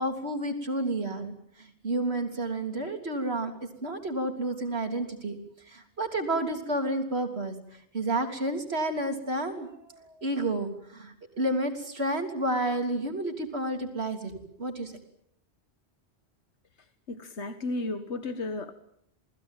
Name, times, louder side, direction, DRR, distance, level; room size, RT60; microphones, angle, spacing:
voice 1, 0.0-1.3 1.6-3.5 3.8-5.4 5.7-7.6 7.9-14.9, right 1 dB, 70° right, 5 dB, 3.6 m, -30 dB
voice 2, 17.1-18.7, left 2 dB, 85° left, 9 dB, 1.8 m, -33 dB
28.5 x 19.5 x 9.1 m, 0.72 s
omnidirectional pair, 1.1 m